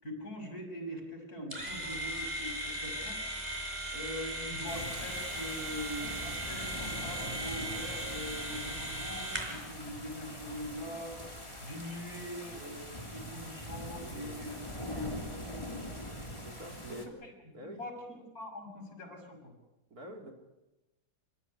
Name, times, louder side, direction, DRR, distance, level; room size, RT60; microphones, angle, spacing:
voice 1, 0.0-3.2 3.9-16.0 16.9-17.3 17.6-19.5, left 1 dB, 60° left, 2 dB, 6.7 m, -43 dB
sound 1, 1.5-9.7, right 1 dB, 25° right, 5.3 m, -38 dB
sound 2, 4.7-17.1, equal, 15° left, 3.3 m, -43 dB
voice 2, 14.0-14.4 16.3-17.0 17.5-17.8 19.9-20.3, right 1 dB, 60° right, 2 dB, 4.3 m, -46 dB
27.5 x 16.5 x 9.9 m, 1.0 s
omnidirectional pair, 1.8 m